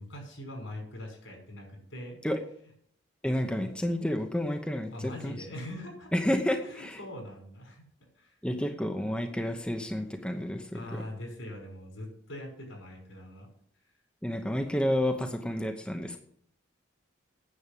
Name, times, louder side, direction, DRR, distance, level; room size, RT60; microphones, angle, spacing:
voice 1, 0.0-2.2 3.5-3.7 4.9-6.1 6.6-7.8 8.1-8.4 10.7-13.5 13.8-13.9, left 1 dB, 80° left, 1 dB, 5.7 m, -42 dB
voice 2, 3.2-5.3 6.1-7.0 8.4-11.0 14.2-16.2, left 1 dB, 5° left, 4 dB, 0.9 m, -30 dB
9.8 x 7.3 x 8.6 m, 0.65 s
head